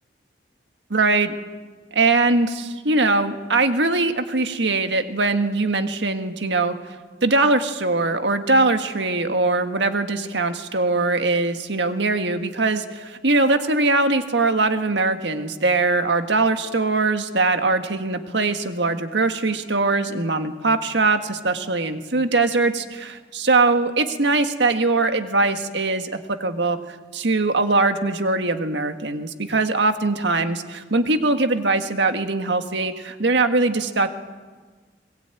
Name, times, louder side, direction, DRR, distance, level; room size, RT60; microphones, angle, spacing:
voice 1, 0.9-1.3 1.9-6.9 7.2-26.1 26.4-34.1, right 3 dB, 75° right, 7 dB, 1.7 m, -21 dB
21.5 x 21.5 x 9.0 m, 1.4 s
head